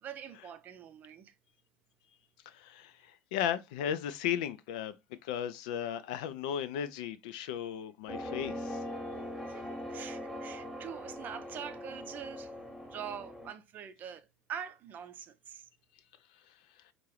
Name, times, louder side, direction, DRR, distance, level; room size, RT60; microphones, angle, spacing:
voice 1, 0.0-1.3 9.5-12.5 12.8-15.7, right 8 dB, 40° right, 0.6 m, -44 dB
voice 2, 2.5-5.0 5.2-8.8, left 9 dB, 60° left, 0.4 m, -35 dB
sound 1, 8.1-13.5, left 1 dB, ahead, 1.1 m, -41 dB
4.5 x 2.5 x 3.1 m
figure-of-eight pair, 65°, 5 cm